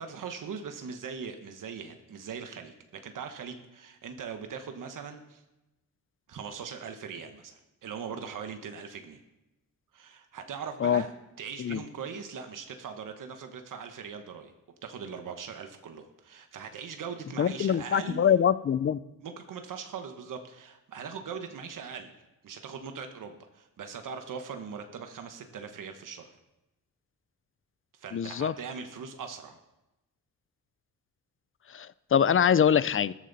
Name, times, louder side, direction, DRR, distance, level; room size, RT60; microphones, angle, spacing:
voice 1, 0.0-5.4 6.3-9.2 9.9-11.1 11.4-14.5 14.8-18.3 19.2-22.1 22.4-26.4 27.9-29.6, right 6 dB, 75° right, 6 dB, 1.2 m, -40 dB
voice 2, 17.4-19.0 28.1-28.5 31.7-33.1, left 8 dB, 40° left, 18 dB, 0.5 m, -24 dB
14.5 x 14.0 x 4.1 m, 0.98 s
cardioid pair, 95°, 32 cm